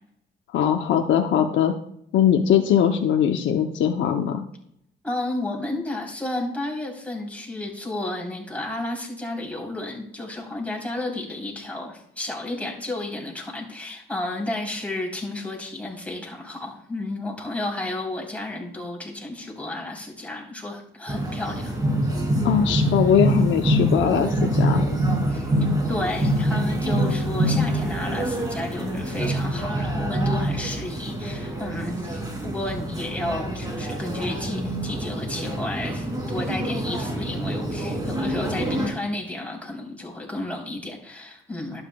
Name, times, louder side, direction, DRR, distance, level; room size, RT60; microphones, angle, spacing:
voice 1, 0.5-1.7 2.1-4.5 22.4-24.8, left 8 dB, 70° left, 4 dB, 0.7 m, -21 dB
voice 2, 5.0-21.7 25.3-25.5 25.9-41.8, left 2 dB, 5° left, -1 dB, 3.5 m, -32 dB
sound 1, 21.1-38.9, right 1 dB, 20° right, 2.7 m, -25 dB
11.5 x 8.8 x 2.3 m, 0.72 s
cardioid pair, 90°, 20 cm